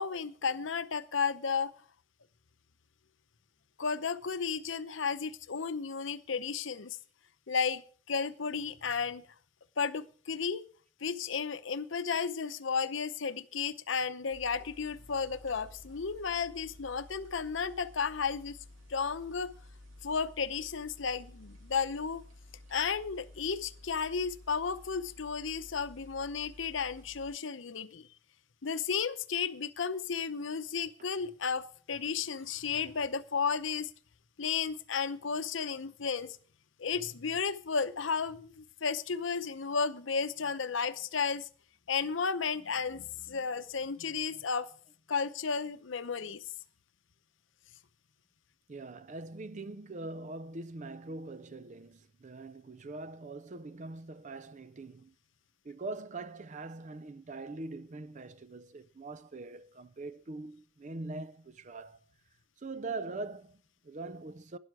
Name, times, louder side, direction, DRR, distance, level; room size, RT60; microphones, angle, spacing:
voice 1, 0.0-1.7 3.8-7.0 7.5-7.8 8.1-9.2 9.8-10.6 11.0-18.6 18.9-19.5 20.0-22.2 22.7-28.1 28.6-33.9 34.4-36.4 36.8-41.5 41.9-44.7 45.1-46.4, left 5 dB, 70° left, 0.7 m, -33 dB
sound 1, 14.3-27.3, left 1 dB, 80° right, 2.4 m, -54 dB
voice 2, 48.7-55.1 55.6-62.0 62.6-64.6, right 3 dB, 35° right, 0.5 m, -42 dB
12.0 x 10.5 x 4.7 m
head